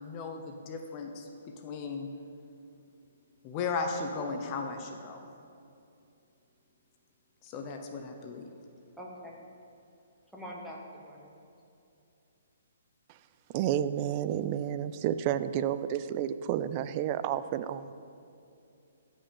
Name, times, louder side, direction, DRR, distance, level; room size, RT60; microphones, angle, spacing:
voice 1, 0.0-2.1 3.4-5.2 7.4-8.5, left 4 dB, 30° left, 4 dB, 0.8 m, -36 dB
voice 2, 9.0-9.4 10.3-11.3, equal, ahead, -4 dB, 1.5 m, -44 dB
voice 3, 13.5-17.9, right 10 dB, 35° right, 13 dB, 0.4 m, -30 dB
13.5 x 5.4 x 5.5 m, 2.6 s
hypercardioid pair, 145°, 0 cm